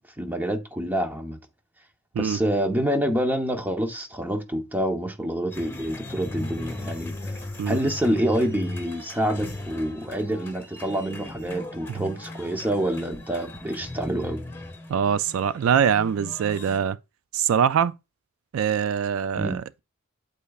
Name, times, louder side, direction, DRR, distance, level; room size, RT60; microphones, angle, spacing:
voice 1, 0.2-1.4 2.2-7.2 7.7-14.4 19.4-19.6, right 1 dB, 10° right, 0.9 m, -27 dB
sound 1, 5.5-16.8, left 2 dB, 10° left, 1.4 m, -38 dB
voice 2, 14.9-17.0 17.3-17.9 18.5-19.8, right 8 dB, 70° right, 0.3 m, -23 dB
8.3 x 8.1 x 2.4 m
head